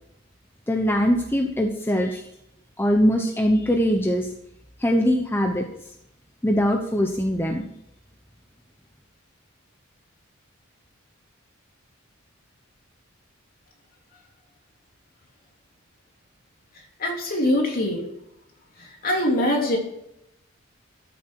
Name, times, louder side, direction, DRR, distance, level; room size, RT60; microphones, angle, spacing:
voice 1, 0.7-2.2 2.8-4.3 4.8-5.6 6.4-7.6, equal, 10° left, 2 dB, 0.9 m, -22 dB
voice 2, 17.0-18.0 18.8-19.8, left 1 dB, 45° left, 0 dB, 3.2 m, -23 dB
14.0 x 7.6 x 4.7 m, 0.82 s
head